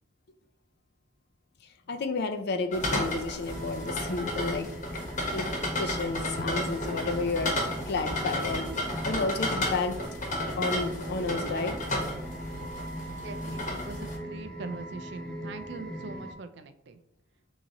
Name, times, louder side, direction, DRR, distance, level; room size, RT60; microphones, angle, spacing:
voice 1, 1.9-4.7 5.3-5.5 5.8-10.0 10.6-11.8, left 3 dB, 55° left, 7 dB, 0.5 m, -31 dB
sound 1, 2.7-14.2, left 1 dB, 40° left, 1.1 m, -33 dB
sound 2, 3.5-16.3, equal, 5° left, 0.6 m, -40 dB
voice 2, 13.2-17.0, right 3 dB, 60° right, 9 dB, 0.4 m, -42 dB
3.7 x 3.0 x 4.0 m, 0.78 s
head